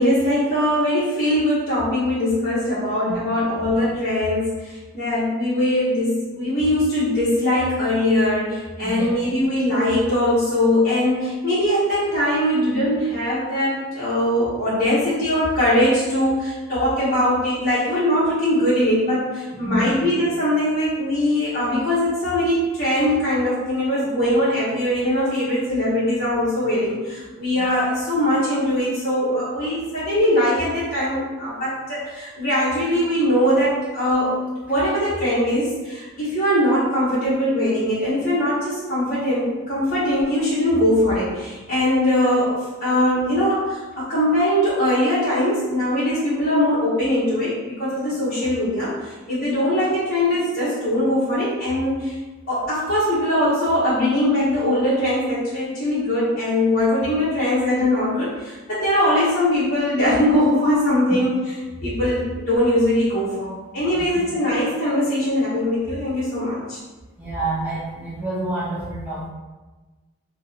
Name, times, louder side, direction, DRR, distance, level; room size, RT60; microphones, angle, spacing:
voice 1, 0.0-34.4 34.7-52.1 52.5-61.3 61.8-66.8, left 1 dB, 45° left, -11 dB, 1.0 m, -21 dB
voice 2, 8.8-9.1 19.6-20.0 27.6-27.7 61.7-61.8 63.9-64.2 67.2-69.3, right 2 dB, 5° right, -8 dB, 0.8 m, -28 dB
2.8 x 2.7 x 4.0 m, 1.2 s
head